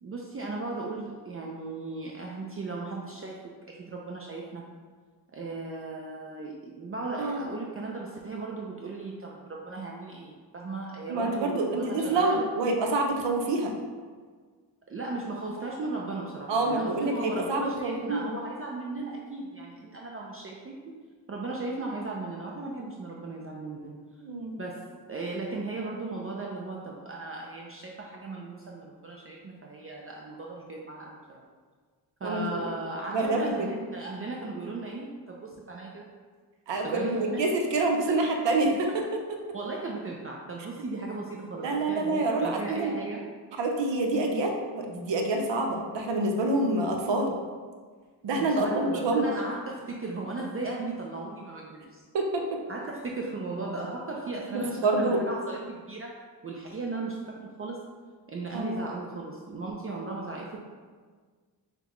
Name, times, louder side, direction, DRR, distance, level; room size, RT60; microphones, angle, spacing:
voice 1, 0.0-4.7 5.3-12.5 14.9-20.8 21.3-24.0 24.6-31.4 32.2-36.1 36.8-37.4 38.1-38.3 38.9-39.0 39.5-43.2 48.4-52.0 52.7-57.8 58.3-60.6, right 3 dB, 35° right, -2 dB, 0.4 m, -36 dB
voice 2, 11.1-13.7 16.5-18.3 24.2-24.6 32.2-32.4 33.1-33.7 36.7-39.1 41.6-42.9 43.6-47.4 48.2-49.3 52.1-52.6 54.5-55.2 58.5-58.8, right 2 dB, 80° right, 2 dB, 0.7 m, -27 dB
5.9 x 2.2 x 3.0 m, 1.5 s
cardioid pair, 65°, 43 cm